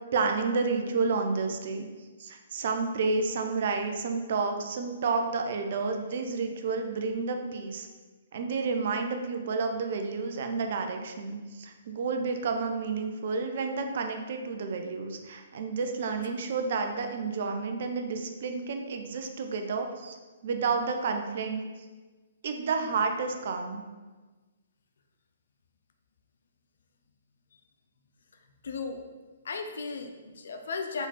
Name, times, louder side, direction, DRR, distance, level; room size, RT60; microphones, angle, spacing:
voice 1, 0.1-1.9 2.2-7.9 8.3-20.2 20.4-21.6 22.4-23.8, right 4 dB, 50° right, 5 dB, 0.7 m, -30 dB
voice 2, 28.6-29.0 29.4-31.1, left 4 dB, 60° left, 5 dB, 0.7 m, -35 dB
6.0 x 4.0 x 4.2 m, 1.3 s
figure-of-eight pair, 125°, 0 cm